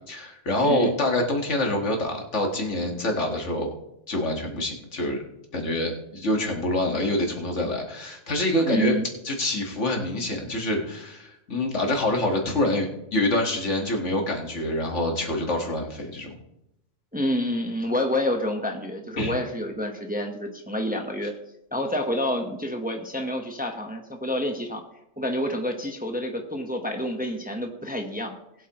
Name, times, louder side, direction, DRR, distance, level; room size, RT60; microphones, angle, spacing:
voice 1, 0.1-3.7 4.1-5.2 5.5-8.9 9.2-16.4 19.2-19.3, left 1 dB, 75° left, 1 dB, 2.1 m, -26 dB
voice 2, 8.6-9.0 17.1-21.3 21.7-24.8 25.2-28.4, equal, 10° right, 3 dB, 1.1 m, -28 dB
20.0 x 8.2 x 3.0 m, 0.83 s
omnidirectional pair, 1.2 m